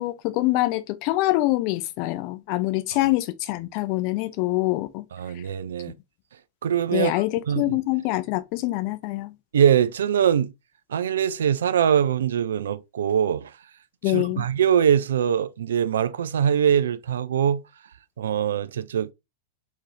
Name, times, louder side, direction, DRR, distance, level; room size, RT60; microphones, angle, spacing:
voice 1, 0.0-5.0 5.8-5.9 6.9-9.3 14.0-14.4, left 18 dB, 40° left, 0.4 m, -25 dB
voice 2, 5.1-5.9 6.6-7.8 9.5-10.5 10.9-13.5 14.1-17.6 18.2-19.1, right 9 dB, 60° right, 0.3 m, -22 dB
3.7 x 2.7 x 2.9 m
figure-of-eight pair, 95°, 0 cm